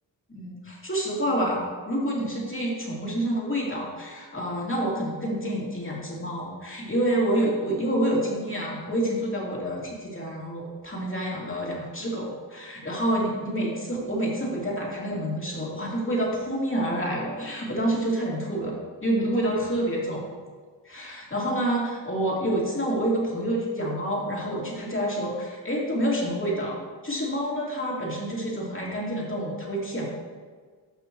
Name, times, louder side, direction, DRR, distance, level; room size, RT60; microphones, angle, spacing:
voice 1, 0.3-20.3 20.8-30.1, right 1 dB, 25° left, -4 dB, 2.7 m, -28 dB
13.0 x 5.9 x 3.1 m, 1.5 s
cardioid pair, 65°, 45 cm